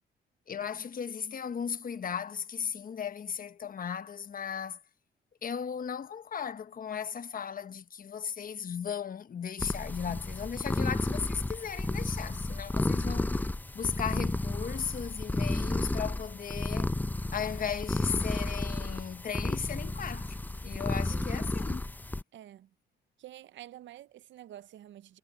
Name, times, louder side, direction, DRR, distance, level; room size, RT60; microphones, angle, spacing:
voice 1, 0.5-4.8 5.4-13.4 13.7-16.9 17.3-20.4 20.6-21.8, left 7 dB, 45° left, 1.3 m, -36 dB
sound 1, 9.6-22.2, left 2 dB, 10° left, 0.6 m, -32 dB
voice 2, 21.1-21.5 22.3-22.7 23.2-25.2, right 13 dB, 70° right, 0.7 m, -49 dB
cardioid pair, 90°, 20 cm